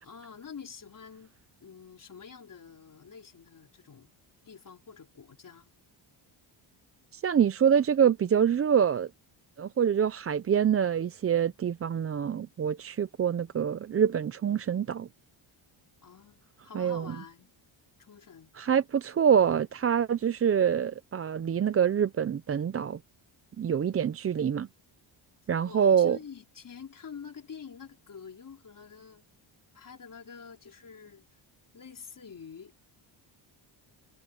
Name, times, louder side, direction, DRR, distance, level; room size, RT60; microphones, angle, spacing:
voice 1, 0.0-1.3 1.6-4.1 4.4-5.7 16.0-17.6 18.0-18.5 25.6-29.2 29.7-31.2 31.7-32.7, left 6 dB, 40° left, 4.5 m, -47 dB
voice 2, 7.1-9.1 9.6-15.1 16.7-17.2 18.6-23.0 23.6-24.7 25.5-26.2, right 8 dB, 30° right, 0.5 m, -25 dB
cardioid pair, 120°, 48 cm